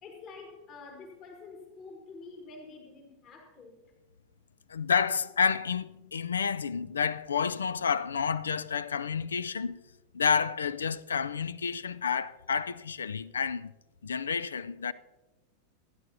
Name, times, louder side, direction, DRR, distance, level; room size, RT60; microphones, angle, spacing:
voice 1, 0.0-3.8, left 4 dB, 35° left, 1.7 m, -48 dB
voice 2, 4.7-9.8 10.1-13.7 14.0-14.9, left 6 dB, 70° left, 0.3 m, -30 dB
25.5 x 9.8 x 2.7 m
figure-of-eight pair, 90°, 0 cm